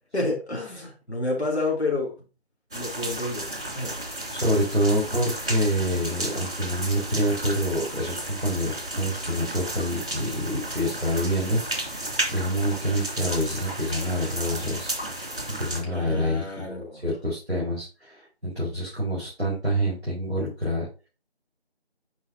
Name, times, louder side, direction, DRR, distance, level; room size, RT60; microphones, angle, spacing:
voice 1, 0.1-2.2 2.7-3.5 3.7-4.0 15.8-17.0, left 2 dB, 85° left, 3.1 m, -29 dB
sound 1, 2.7-15.8, right 1 dB, 55° right, 2.6 m, -33 dB
voice 2, 4.3-14.9 15.5-18.1 18.4-21.1, equal, 5° right, 3.6 m, -27 dB
9.9 x 4.9 x 2.8 m
figure-of-eight pair, 175°, 32 cm